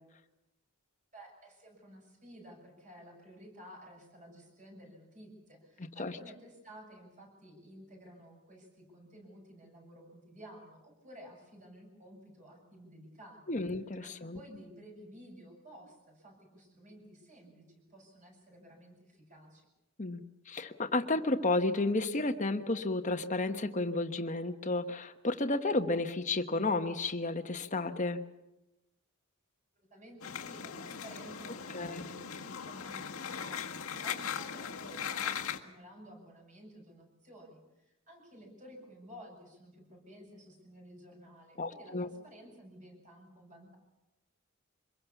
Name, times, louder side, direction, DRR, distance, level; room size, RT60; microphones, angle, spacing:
voice 1, 1.1-13.6 14.0-19.7 29.7-43.8, equal, 35° right, 1 dB, 7.7 m, -53 dB
voice 2, 13.5-14.4 20.0-28.2 31.7-32.1 41.6-42.1, left 2 dB, 35° left, 7 dB, 1.3 m, -32 dB
sound 1, 30.2-35.6, left 7 dB, 90° left, 1.7 m, -39 dB
25.0 x 22.0 x 7.2 m, 0.95 s
head